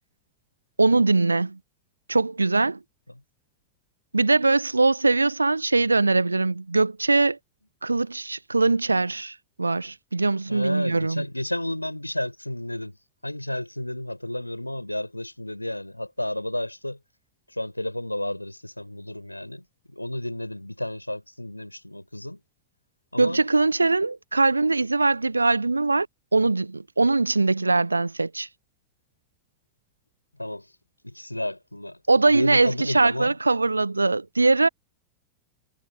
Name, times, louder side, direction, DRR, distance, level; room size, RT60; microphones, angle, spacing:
voice 1, 0.8-1.6 2.1-2.8 4.1-7.4 7.8-11.2 23.2-26.1 26.3-28.5 32.1-34.7, right 3 dB, 80° right, 0.8 m, -21 dB
voice 2, 10.5-13.0 13.2-17.0 17.5-22.4 23.1-23.4 30.4-30.7 31.0-33.4, left 1 dB, 85° left, 5.0 m, -32 dB
figure-of-eight pair, 90°, 0 cm